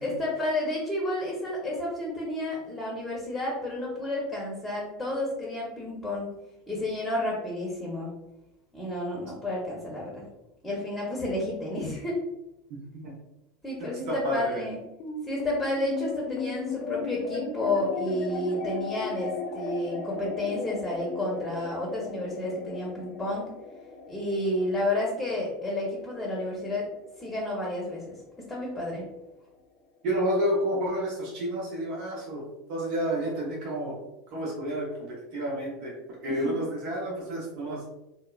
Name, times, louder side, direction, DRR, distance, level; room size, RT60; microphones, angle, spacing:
voice 1, 0.0-6.3 6.7-8.1 8.7-10.2 10.6-12.2 13.6-14.8 15.3-23.5 24.1-26.9 27.2-28.1 28.5-29.0 36.3-36.6, left 1 dB, 10° left, -3 dB, 0.8 m, -31 dB
voice 2, 12.7-13.1 13.8-14.5 30.0-32.4 32.7-33.9 34.3-35.9 36.2-37.8, equal, 55° right, -4 dB, 0.7 m, -30 dB
sound 1, 15.0-27.6, left 4 dB, 55° left, 0.5 m, -36 dB
2.8 x 2.0 x 2.3 m, 0.94 s
hypercardioid pair, 85°, 0 cm